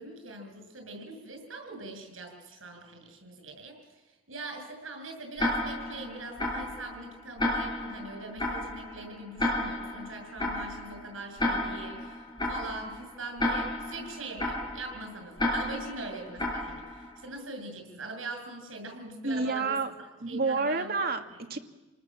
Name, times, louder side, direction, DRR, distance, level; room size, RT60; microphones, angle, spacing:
voice 1, 0.0-3.8 4.3-12.2 12.5-19.8 20.3-21.0, right 2 dB, 85° right, 4 dB, 7.1 m, -42 dB
Tick-tock, 5.4-17.2, left 1 dB, 20° left, 5.7 m, -33 dB
voice 2, 19.2-19.9 20.2-21.6, right 3 dB, 50° right, 5 dB, 1.9 m, -29 dB
28.5 x 19.5 x 7.6 m, 1.1 s
head